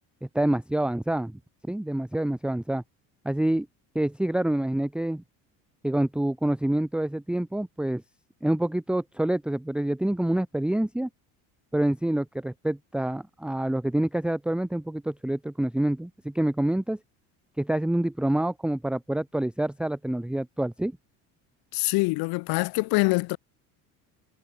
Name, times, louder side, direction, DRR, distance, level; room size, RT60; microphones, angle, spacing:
voice 1, 0.2-1.4 1.7-2.8 3.2-3.7 3.9-5.2 5.8-8.0 8.4-11.1 11.7-17.0 17.6-20.9, right 1 dB, ahead, 1.0 m, -27 dB
voice 2, 21.7-23.4, left 25 dB, 70° left, 1.0 m, -24 dB
cardioid pair, 125°, 39 cm